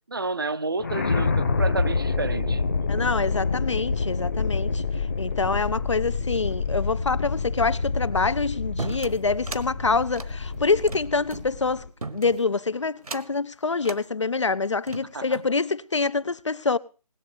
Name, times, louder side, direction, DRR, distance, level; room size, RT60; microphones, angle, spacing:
voice 1, 0.1-2.6 15.1-15.4, right 3 dB, 35° right, 0.6 m, -30 dB
sound 1, 0.8-11.9, left 4 dB, 25° left, 1.1 m, -27 dB
voice 2, 2.9-4.8 5.2-11.9 12.1-16.8, left 4 dB, 50° left, 0.6 m, -26 dB
sound 2, 8.8-9.7 10.1-11.5 12.0-12.5 13.0-13.4 13.8-14.0 14.6-15.5, right 3 dB, 70° right, 1.4 m, -37 dB
19.5 x 7.2 x 6.6 m
figure-of-eight pair, 175°, 20 cm